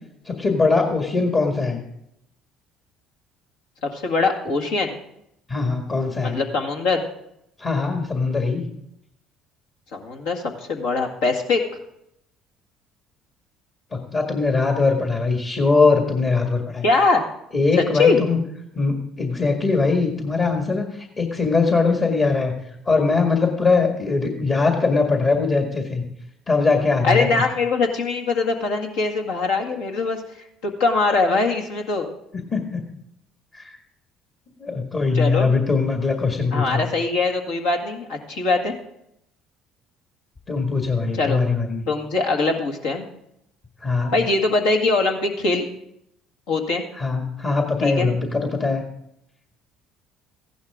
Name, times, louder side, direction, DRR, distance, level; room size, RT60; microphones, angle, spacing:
voice 1, 0.3-1.8 5.5-6.4 7.6-8.7 13.9-16.8 17.5-18.4 18.7-26.0 26.5-27.3 32.3-32.8 33.5-33.7 34.6-36.8 40.5-41.8 43.8-44.1 47.0-48.8, left 4 dB, 40° left, 2 dB, 2.0 m, -21 dB
voice 2, 3.8-5.0 6.2-7.0 9.9-11.6 16.8-17.2 17.8-18.2 27.0-30.2 30.6-32.1 35.1-35.5 36.5-38.7 41.1-41.4 41.9-43.1 44.1-45.7 46.5-46.8 47.8-48.1, left 3 dB, 75° left, 2 dB, 1.9 m, -22 dB
15.0 x 11.5 x 3.7 m, 0.78 s
hypercardioid pair, 65°, 0 cm